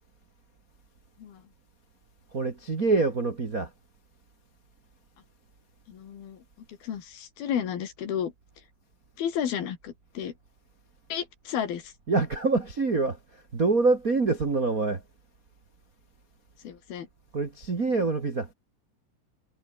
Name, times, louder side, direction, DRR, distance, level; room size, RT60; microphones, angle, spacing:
voice 1, 2.3-3.7 12.1-13.2 13.5-15.0 17.3-18.5, right 3 dB, 45° right, 1.1 m, -25 dB
voice 2, 5.9-6.4 6.8-8.3 9.2-10.3 11.1-11.9 16.6-17.1, left 9 dB, 60° left, 4.1 m, -32 dB
omnidirectional pair, 5.2 m